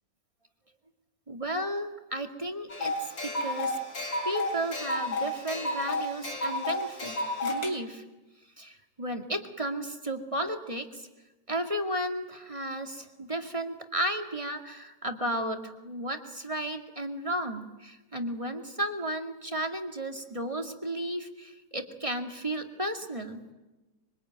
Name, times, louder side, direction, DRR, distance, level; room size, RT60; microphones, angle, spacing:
voice 1, 1.3-3.8 4.3-7.2 7.4-8.0 8.6-11.1 11.5-23.4, right 1 dB, 15° right, 5 dB, 2.1 m, -33 dB
sound 1, 2.7-7.7, left 1 dB, 85° left, 4.3 m, -32 dB
25.5 x 24.5 x 9.4 m, 1.1 s
omnidirectional pair, 2.0 m